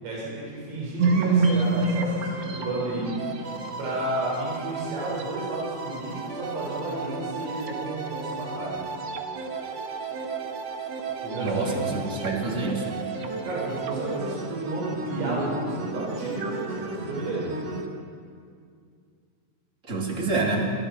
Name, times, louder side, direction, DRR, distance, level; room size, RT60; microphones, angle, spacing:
voice 1, 0.0-3.2 3.8-8.8 11.2-12.5 13.4-17.5, right 2 dB, 90° right, -5 dB, 9.4 m, -32 dB
sound 1, 1.0-17.9, right 3 dB, 60° right, 1.7 m, -30 dB
voice 2, 11.4-13.0 19.9-20.7, right 3 dB, 20° right, -1 dB, 2.8 m, -27 dB
28.0 x 27.0 x 5.0 m, 2.2 s
omnidirectional pair, 5.8 m